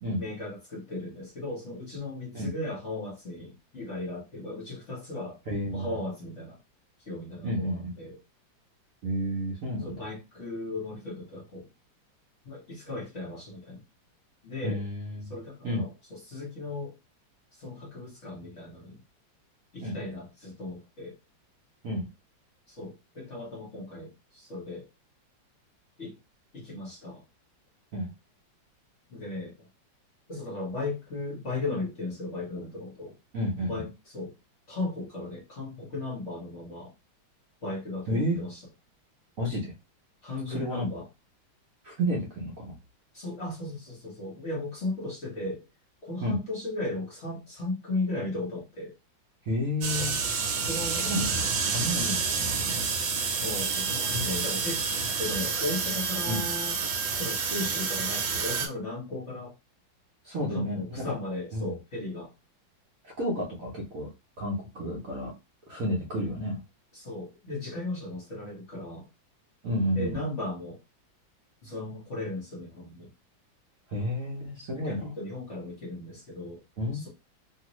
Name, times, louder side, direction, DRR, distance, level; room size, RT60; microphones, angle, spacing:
voice 1, 0.2-5.4 5.7-6.6 7.0-8.2 9.8-11.7 12.4-13.8 14.4-14.8 15.2-16.9 17.5-19.0 19.7-21.2 22.7-24.9 26.0-26.2 26.5-27.2 29.1-29.6 30.3-33.2 33.7-34.3 34.7-36.9 37.6-38.6 40.2-41.1 43.1-45.6 46.0-48.9 50.5-51.1 52.0-52.3 53.4-56.8 57.2-59.5 60.2-62.3 66.9-69.1 69.9-70.8 71.6-73.1 74.7-76.6 76.9-77.1, left 2 dB, 45° left, 1.1 m, -36 dB
voice 2, 5.5-5.9 7.4-8.0 9.0-9.9 14.6-15.3 15.6-15.8 19.8-20.0 21.8-22.1 27.9-28.1 33.3-33.8 38.1-38.4 39.4-39.7 40.5-40.9 41.8-42.7 46.2-46.4 49.4-50.2 50.9-51.3 51.6-52.2 54.1-54.5 56.3-56.5 60.2-61.0 61.5-61.8 63.0-64.1 64.4-65.3 65.7-66.6 69.6-70.2 73.9-75.0 76.8-77.1, equal, 60° right, 0.9 m, -31 dB
sound 1, 49.8-58.7, right 5 dB, 75° right, 1.4 m, -29 dB
3.0 x 2.5 x 3.0 m
omnidirectional pair, 2.1 m